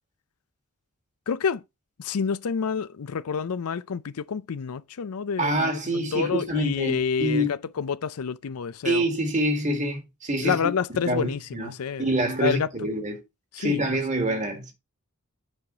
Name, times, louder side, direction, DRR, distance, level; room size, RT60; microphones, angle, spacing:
voice 1, 1.3-1.6 2.0-7.4 7.8-9.0 10.4-12.1 12.4-12.7 13.5-14.0, left 6 dB, 80° left, 0.5 m, -28 dB
voice 2, 5.4-7.5 8.8-10.7 11.0-11.7 12.0-13.2 13.6-14.7, right 1 dB, 35° right, 1.7 m, -26 dB
8.4 x 4.9 x 3.9 m
head